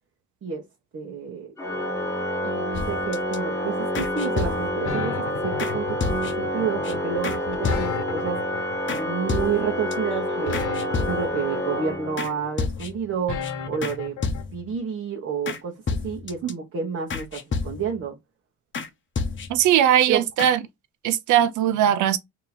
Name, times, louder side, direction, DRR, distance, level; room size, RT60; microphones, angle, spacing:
voice 1, 0.9-1.5 2.4-8.4 8.9-10.6 11.0-14.2 14.5-18.2 20.1-20.2, right 6 dB, 50° right, 1.1 m, -30 dB
Organ, 1.6-12.5, left 1 dB, 10° left, 1.1 m, -28 dB
sound 1, 2.7-3.4 3.9-4.9 5.6-5.7 6.0-6.5 6.8-6.9 7.2-7.4 7.6-8.2 8.9-9.0 9.3-9.9 10.5-11.5 12.2-12.3 12.6-13.1 13.4-13.5 13.8-14.0 14.2-14.8 15.5-15.6 15.9-16.5 17.1-18.0 18.7-18.9 19.2-19.7 20.0-20.1 20.4-20.5, left 4 dB, 40° left, 0.8 m, -30 dB
sound 2, 4.8-14.4, left 7 dB, 80° left, 1.1 m, -34 dB
voice 2, 19.5-20.6 21.0-22.2, right 11 dB, 75° right, 0.6 m, -19 dB
2.9 x 2.9 x 4.0 m
cardioid pair, 90°, 30 cm